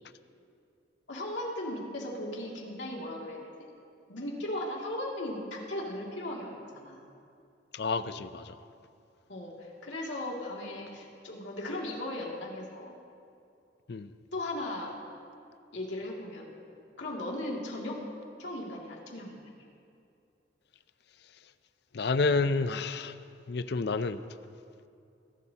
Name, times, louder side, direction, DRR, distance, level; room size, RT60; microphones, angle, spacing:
voice 1, 1.1-3.4 4.1-7.0 9.3-12.9 14.3-14.9 15.7-16.5 17.0-18.0 18.4-19.4, left 1 dB, 85° left, -3 dB, 2.5 m, -37 dB
voice 2, 7.7-8.6 13.9-14.1 21.9-23.2 23.5-24.2, left 3 dB, 65° left, 13 dB, 0.5 m, -29 dB
22.5 x 12.5 x 2.9 m, 2.5 s
head